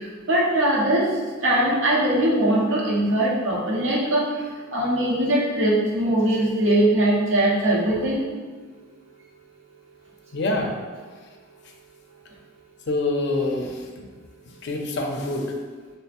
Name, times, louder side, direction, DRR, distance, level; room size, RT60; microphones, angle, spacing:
voice 1, 0.3-1.1 1.4-4.2 4.7-8.2, right 1 dB, 75° right, -4 dB, 0.8 m, -21 dB
voice 2, 10.3-10.7 12.9-14.1 14.6-15.5, left 2 dB, 55° left, 2 dB, 0.5 m, -26 dB
3.3 x 2.0 x 4.1 m, 1.4 s
head